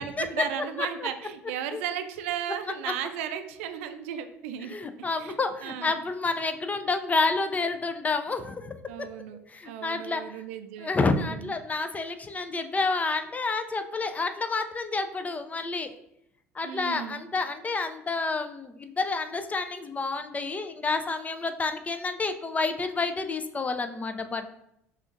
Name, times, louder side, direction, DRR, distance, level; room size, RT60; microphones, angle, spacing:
voice 1, 0.0-4.8 5.2-6.0 8.9-9.4 9.7-10.9 11.2-11.5 16.6-17.2, right 9 dB, 65° right, 9 dB, 0.4 m, -35 dB
voice 2, 0.6-1.1 1.7-1.8 4.6-9.1 9.5-10.2 10.8-15.9 16.5-24.5, left 3 dB, 20° left, 8 dB, 0.4 m, -29 dB
5.6 x 2.4 x 2.5 m, 0.77 s
figure-of-eight pair, 60°, 8 cm